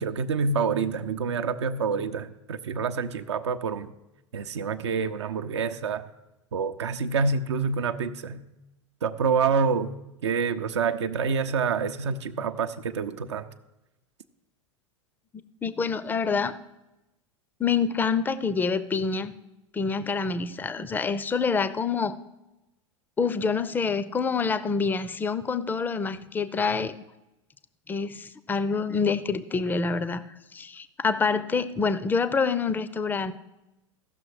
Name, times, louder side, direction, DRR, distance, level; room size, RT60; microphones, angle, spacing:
voice 1, 0.0-3.9 4.3-6.0 6.5-8.4 9.0-9.9 10.2-13.5, right 5 dB, 65° right, 8 dB, 0.6 m, -27 dB
voice 2, 15.6-16.6 17.6-19.3 19.7-22.2 23.2-27.0 27.9-30.2 30.5-33.3, left 5 dB, 10° left, 15 dB, 0.5 m, -26 dB
15.5 x 6.2 x 4.8 m, 0.96 s
figure-of-eight pair, 90°, 16 cm